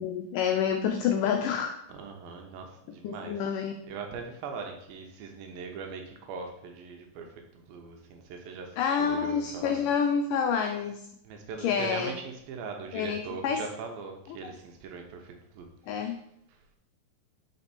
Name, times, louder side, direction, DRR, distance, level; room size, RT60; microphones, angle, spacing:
voice 1, 0.0-1.8 3.0-3.7 8.8-11.0 11.6-12.1 12.9-13.6 15.9-16.2, left 7 dB, 90° left, 4 dB, 1.8 m, -28 dB
voice 2, 1.9-3.5 3.9-9.9 11.2-16.2, right 5 dB, 80° right, 3 dB, 2.4 m, -41 dB
5.2 x 4.4 x 4.1 m, 0.73 s
omnidirectional pair, 4.3 m